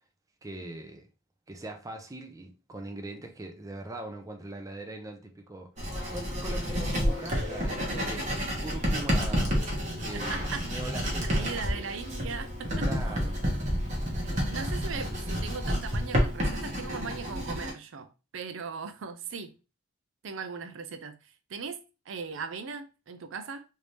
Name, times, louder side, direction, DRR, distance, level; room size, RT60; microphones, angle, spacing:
voice 1, 0.4-1.1 1.5-8.3 8.6-9.6 10.0-11.5 12.8-13.6, right 2 dB, 15° right, 0.5 m, -41 dB
Writing, 5.8-17.7, equal, 35° right, 1.0 m, -30 dB
voice 2, 10.1-10.6 11.2-12.9 14.2-19.5 20.2-21.8 22.1-23.6, right 5 dB, 75° right, 0.5 m, -39 dB
3.3 x 2.7 x 3.2 m
head